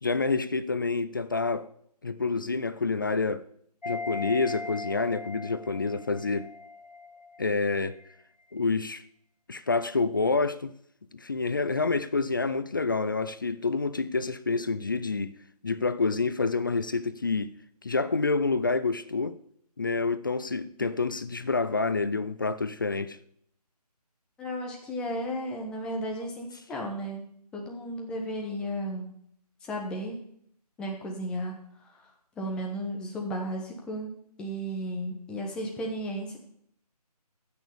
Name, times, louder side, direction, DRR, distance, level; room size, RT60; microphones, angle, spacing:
voice 1, 0.0-1.7 2.0-3.4 3.9-6.5 7.4-8.0 8.5-9.0 9.5-10.7 11.1-15.3 15.6-17.5 17.8-19.4 19.8-23.2, left 3 dB, 30° left, 0.4 m, -28 dB
sound 1, 3.8-7.7 8.0-8.1, left 4 dB, 85° left, 1.0 m, -39 dB
voice 2, 24.4-27.2 27.5-29.1 29.6-30.2 30.8-31.5 31.9-32.0 32.4-34.1 34.4-36.4, equal, 5° left, 0.9 m, -34 dB
15.0 x 6.4 x 6.9 m
figure-of-eight pair, 155°, 21 cm